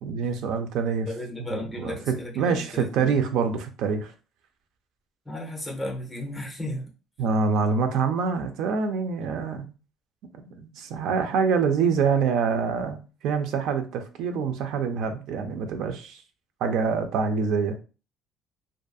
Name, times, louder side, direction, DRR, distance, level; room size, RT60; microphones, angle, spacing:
voice 1, 0.0-4.1 7.2-9.7 10.4-13.0 13.2-16.2 16.6-17.8, right 5 dB, 65° right, 7 dB, 0.4 m, -26 dB
voice 2, 1.1-3.1 5.3-6.9, left 1 dB, 10° left, 0 dB, 0.6 m, -34 dB
2.5 x 2.5 x 2.2 m, 0.34 s
cardioid pair, 155°, 0 cm